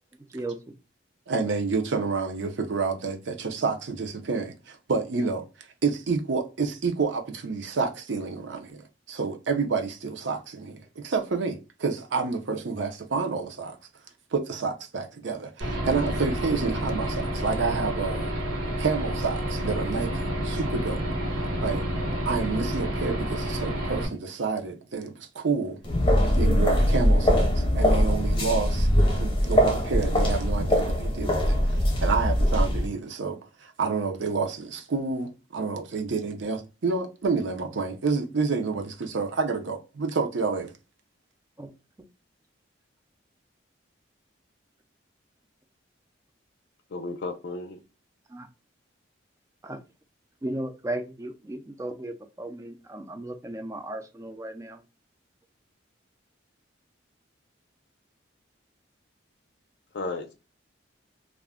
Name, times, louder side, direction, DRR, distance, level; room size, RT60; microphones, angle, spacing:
voice 1, 0.2-0.7 41.6-41.7 48.3-48.5 49.6-49.8 50.4-54.8, right 1 dB, 15° right, 0.3 m, -35 dB
voice 2, 1.3-13.8 14.3-18.3 18.8-21.0 21.6-21.8 22.3-25.8 26.2-28.9 29.2-40.7, right 4 dB, 70° right, 0.5 m, -29 dB
Aircraft / Engine, 15.6-24.1, equal, 85° right, 1.1 m, -29 dB
sound 1, 25.8-32.9, equal, 25° left, 0.7 m, -22 dB
voice 3, 46.9-47.8 59.9-60.3, left 3 dB, 55° left, 0.5 m, -33 dB
2.4 x 2.1 x 3.5 m
head